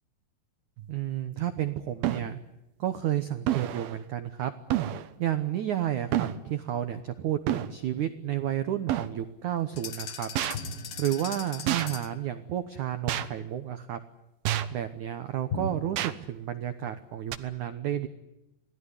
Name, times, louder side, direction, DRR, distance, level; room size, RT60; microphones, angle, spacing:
sound 1, 0.8-0.9 2.0-2.3 3.5-4.0 4.7-5.1 6.1-6.4 7.5-7.7 8.9-9.1 10.4-10.6 11.7-11.9 13.1-13.3 14.4-14.8 16.0-16.1 17.3-17.4, right 12 dB, 70° right, 2.7 m, -28 dB
voice 1, 0.9-2.4 2.8-4.5 5.2-10.3 11.0-14.0 14.7-18.1, right 11 dB, 85° right, 11 dB, 1.7 m, -31 dB
sound 2, 9.8-12.2, left 8 dB, 75° left, 1.4 m, -40 dB
sound 3, 10.5-12.2 15.5-16.1, left 2 dB, 60° left, 8.3 m, -38 dB
27.0 x 18.5 x 9.8 m, 0.91 s
omnidirectional pair, 5.2 m